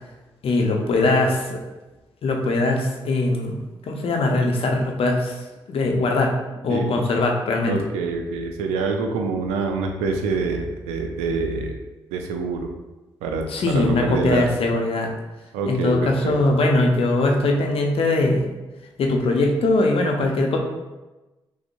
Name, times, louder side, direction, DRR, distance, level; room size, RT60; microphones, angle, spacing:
voice 1, 0.4-1.6 2.2-6.3 6.6-7.8 13.5-15.1 15.7-18.4 19.0-20.6, left 2 dB, 60° left, 1 dB, 0.7 m, -21 dB
voice 2, 6.7-7.0 7.7-11.8 12.1-12.7 13.2-14.5 15.5-16.4, right 4 dB, 85° right, 4 dB, 0.4 m, -26 dB
6.0 x 2.0 x 2.6 m, 1.1 s
hypercardioid pair, 40°, 11 cm